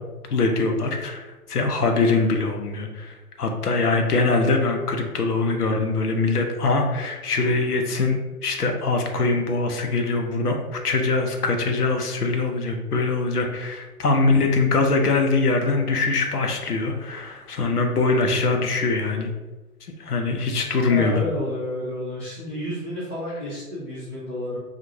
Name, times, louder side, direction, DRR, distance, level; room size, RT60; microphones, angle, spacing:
voice 1, 0.3-19.3 20.0-21.2, left 3 dB, 80° left, 3 dB, 0.8 m, -23 dB
voice 2, 20.9-24.6, left 1 dB, 10° left, -10 dB, 0.3 m, -30 dB
4.5 x 2.4 x 2.7 m, 1.2 s
figure-of-eight pair, 115°, 45 cm